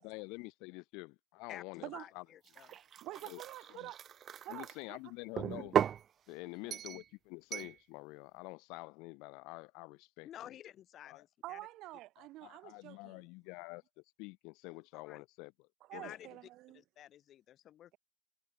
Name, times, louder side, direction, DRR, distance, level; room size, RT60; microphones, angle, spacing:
voice 1, 0.0-2.3 3.2-3.4 3.7-3.9 4.5-5.8 6.3-10.6 11.0-11.2 12.2-16.2, left 28 dB, 65° left, 2.5 m, -48 dB
voice 2, 1.5-2.7 10.2-11.6 14.9-15.2 15.9-16.4 16.7-18.0, left 11 dB, 45° left, 3.8 m, -52 dB
sound 1, 2.5-4.7 5.4-6.0 6.7-7.0 7.5-7.7, right 9 dB, 40° right, 0.6 m, -36 dB
voice 3, 2.7-4.0 4.4-5.0 6.6-6.8 11.4-13.2 15.9-16.8, right 17 dB, 60° right, 4.8 m, -47 dB
supercardioid pair, 95°, 0 cm